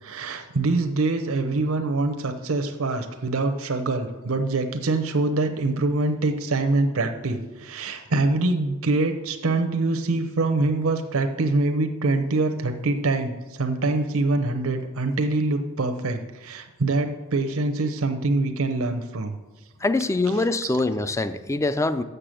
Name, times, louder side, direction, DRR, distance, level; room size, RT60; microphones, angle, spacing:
voice 1, 0.0-19.4 20.3-20.7, right 2 dB, 80° right, 6 dB, 0.7 m, -24 dB
voice 2, 19.8-22.0, left 2 dB, 15° left, 12 dB, 0.3 m, -24 dB
6.7 x 6.7 x 7.6 m, 1.2 s
head